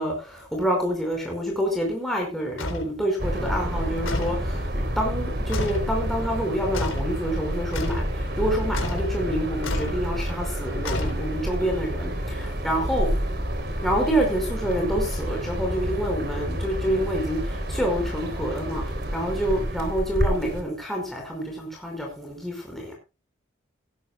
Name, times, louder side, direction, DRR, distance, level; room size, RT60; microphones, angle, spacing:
voice 1, 0.0-13.1 13.8-18.8 19.1-22.9, equal, ahead, 5.0 m, -27 dB
sound 1, 2.6-2.9 4.1-4.5 5.5-5.9 6.7-7.1 7.7-8.1 8.7-9.1 9.6-10.0 10.9-11.5, left 1 dB, 75° left, 3.9 m, -30 dB
sound 2, 3.2-20.6, equal, 50° right, 3.6 m, -29 dB
18.5 x 13.5 x 2.2 m
head